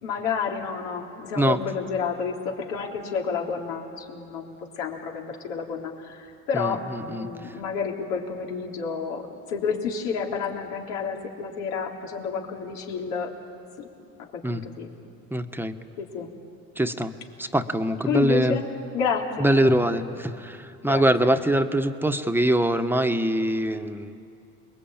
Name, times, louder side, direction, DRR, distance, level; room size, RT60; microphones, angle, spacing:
voice 1, 0.0-13.3 13.8-13.9 14.2-14.9 16.0-16.3 18.0-18.7 18.9-20.0 20.8-21.3, left 6 dB, 80° left, 0 dB, 3.6 m, -30 dB
voice 2, 6.5-7.5 14.4-14.6 15.3-15.7 16.8-17.1 17.4-18.6 19.4-24.2, right 1 dB, 5° right, 7 dB, 1.5 m, -23 dB
29.0 x 21.5 x 9.0 m, 2.6 s
hypercardioid pair, 75°, 39 cm